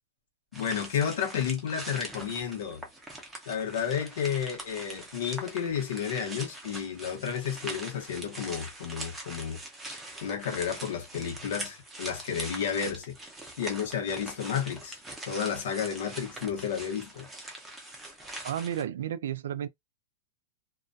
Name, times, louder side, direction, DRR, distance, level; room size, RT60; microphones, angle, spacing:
voice 1, 0.5-2.8 3.5-9.6 10.2-13.1 13.6-15.0 15.2-17.3, left 8 dB, 75° left, 0.9 m, -32 dB
sound 1, 0.5-18.8, right 1 dB, 5° right, 0.6 m, -43 dB
voice 2, 18.4-19.7, right 10 dB, 85° right, 0.3 m, -32 dB
2.3 x 2.2 x 2.6 m
supercardioid pair, 170°, 0 cm